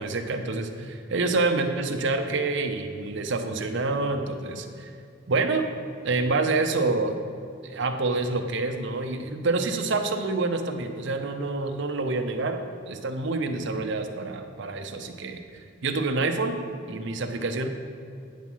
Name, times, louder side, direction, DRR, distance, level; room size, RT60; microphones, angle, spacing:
voice 1, 0.0-4.9 5.3-5.7 6.0-7.2 7.6-15.4 15.8-16.6 16.9-17.7, right 3 dB, 65° right, 5 dB, 0.8 m, -27 dB
9.4 x 6.2 x 5.6 m, 2.4 s
head